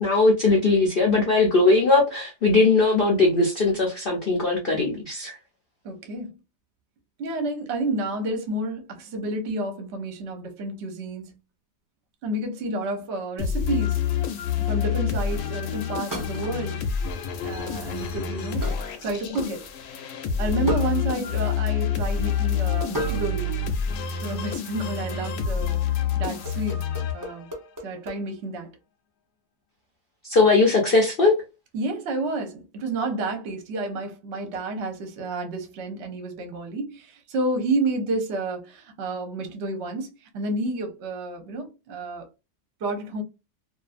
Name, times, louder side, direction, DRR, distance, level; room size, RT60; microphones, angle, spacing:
voice 1, 0.0-5.4 30.2-31.4, left 3 dB, 60° left, 0.5 m, -20 dB
voice 2, 5.8-6.4 7.2-11.4 12.2-14.0 14.6-16.8 17.4-19.7 20.4-23.6 24.2-26.8 27.1-27.5 27.8-28.7 31.7-42.3 42.8-43.2, right 2 dB, 55° right, 0.8 m, -30 dB
sound 1, 13.4-27.6, left 7 dB, 80° left, 1.1 m, -27 dB
sound 2, 13.7-14.1 16.1-16.9 17.4-17.8 18.6-19.8 20.7-21.5 21.8-22.0 22.9-23.5 23.8-24.1 25.8-26.0 26.4-28.2, right 1 dB, 30° right, 0.3 m, -35 dB
2.5 x 2.5 x 2.4 m
omnidirectional pair, 1.7 m